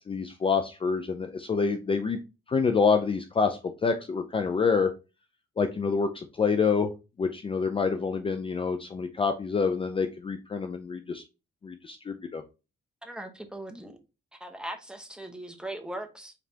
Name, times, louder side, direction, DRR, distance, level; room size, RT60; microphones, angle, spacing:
voice 1, 0.1-2.2 2.5-4.9 5.6-6.9 7.2-11.2 11.6-12.4, left 5 dB, 25° left, 0.5 m, -27 dB
voice 2, 13.0-14.0 14.3-16.3, right 1 dB, 5° right, 0.9 m, -39 dB
5.0 x 3.3 x 2.8 m
cardioid pair, 90°, 20 cm